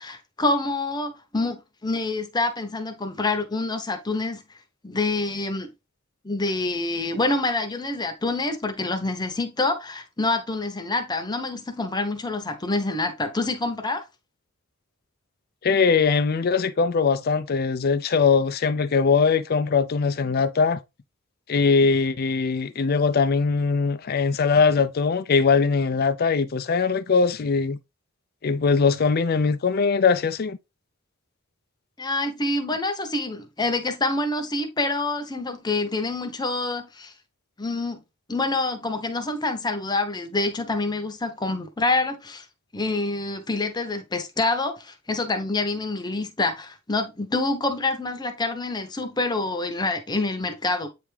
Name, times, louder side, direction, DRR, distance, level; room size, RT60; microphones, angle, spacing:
voice 1, 0.0-4.4 4.8-5.7 6.2-14.0 32.0-37.1 37.6-38.0 38.3-42.4 42.7-50.9, left 2 dB, 20° left, 0.9 m, -26 dB
voice 2, 15.6-20.8 21.5-27.8 28.4-30.6, left 5 dB, 50° left, 0.5 m, -21 dB
8.4 x 3.4 x 3.3 m
head